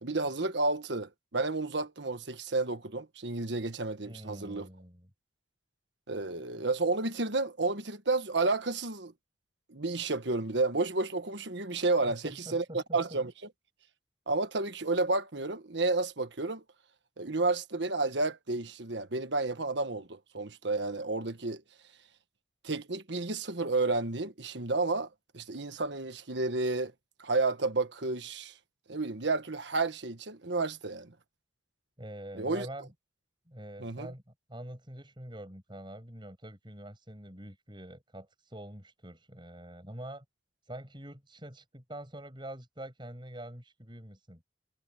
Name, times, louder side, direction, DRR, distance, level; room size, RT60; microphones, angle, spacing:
voice 1, 0.0-4.7 6.1-9.1 9.7-13.3 14.3-16.6 17.2-21.6 22.6-25.1 25.3-26.9 27.2-28.6 28.9-31.1 32.4-32.7 33.8-34.1, right 3 dB, 65° right, 1.5 m, -31 dB
voice 2, 4.0-5.1 12.0-13.2 32.0-32.9 33.5-34.2 34.5-40.2 40.6-44.4, right 1 dB, 25° right, 7.4 m, -45 dB
head